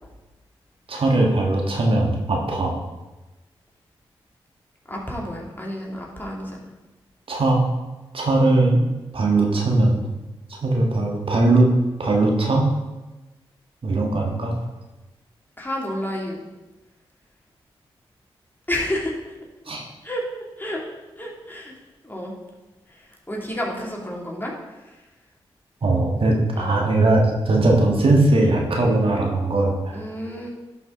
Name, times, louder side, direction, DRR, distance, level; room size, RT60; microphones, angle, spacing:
voice 1, 0.9-2.7 7.3-7.6 8.1-8.8 9.1-10.0 10.6-11.7 12.0-12.7 13.8-14.5 19.7-19.8 25.8-30.0, right 2 dB, 60° right, -1 dB, 1.7 m, -19 dB
voice 2, 4.9-6.7 15.6-16.4 18.7-19.2 20.0-20.2 20.6-20.8 21.2-21.7 22.0-22.3 22.9-24.5 24.8-25.0 26.6-26.9 29.9-30.5, left 1 dB, 20° left, -2 dB, 2.6 m, -30 dB
11.0 x 5.5 x 3.8 m, 1.1 s
supercardioid pair, 40°, 11 cm